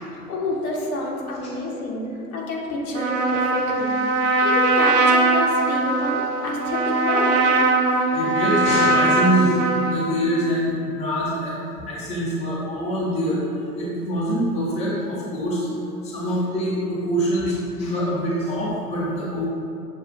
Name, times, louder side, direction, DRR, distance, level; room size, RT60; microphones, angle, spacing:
voice 1, 0.1-2.1 2.3-7.4, left 2 dB, 60° left, -2 dB, 1.0 m, -28 dB
Trumpet, 2.9-10.1, right 2 dB, 50° right, 0.5 m, -20 dB
voice 2, 7.9-9.5 9.8-11.5 11.8-13.4 13.7-15.7 16.0-19.5, equal, 15° left, -7 dB, 0.6 m, -24 dB
6.8 x 2.4 x 2.5 m, 2.6 s
hypercardioid pair, 110°, 48 cm